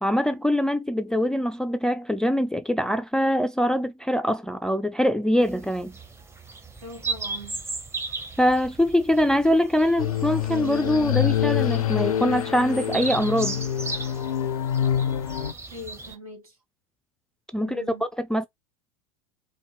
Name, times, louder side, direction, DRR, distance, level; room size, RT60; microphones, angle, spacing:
voice 1, 0.0-6.0 8.4-13.6 17.5-17.8 18.2-18.5, equal, 5° left, 0.3 m, -23 dB
sound 1, 5.4-16.2, right 3 dB, 15° right, 0.8 m, -37 dB
voice 2, 6.8-7.6 15.7-16.6 17.6-18.1, left 1 dB, 75° right, 2.5 m, -41 dB
sound 2, 10.0-15.5, left 10 dB, 75° left, 0.4 m, -26 dB
4.3 x 2.6 x 3.1 m
figure-of-eight pair, 75°, 18 cm